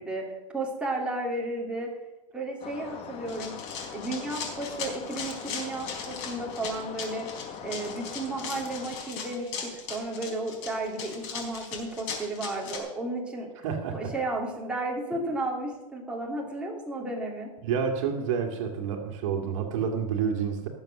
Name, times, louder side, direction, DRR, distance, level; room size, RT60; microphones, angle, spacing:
voice 1, 0.0-1.9 2.3-3.6 3.9-7.3 7.6-13.5 13.9-17.5, right 2 dB, 5° right, -2 dB, 2.9 m, -33 dB
sound 1, 2.6-8.9, left 7 dB, 35° left, 1.5 m, -42 dB
Run, 3.3-12.8, left 6 dB, 50° left, 4.3 m, -38 dB
voice 2, 13.6-14.1 17.6-20.7, right 7 dB, 65° right, 4 dB, 2.2 m, -29 dB
18.0 x 7.2 x 6.6 m, 1.0 s
supercardioid pair, 135°, 18 cm